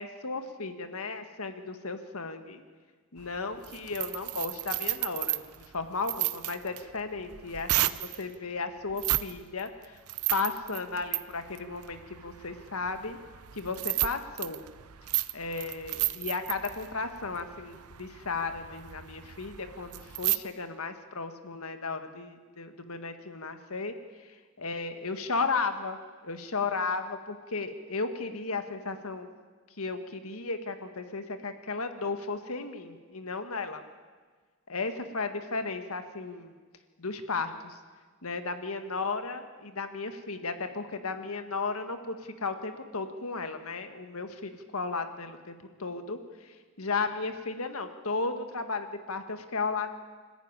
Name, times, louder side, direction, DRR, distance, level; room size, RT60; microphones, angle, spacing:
voice 1, 0.0-2.6 3.1-5.4 5.7-10.0 10.3-13.2 13.5-14.6 15.3-23.9 24.6-26.0 26.2-29.3 29.8-33.8 34.7-36.5 37.0-37.8 38.2-46.2 46.8-49.9, left 4 dB, 70° left, 8 dB, 1.7 m, -34 dB
sound 1, 3.2-8.2 8.9-9.3 9.6-20.4, right 16 dB, 80° right, 0.8 m, -33 dB
25.0 x 14.5 x 9.9 m, 1.5 s
head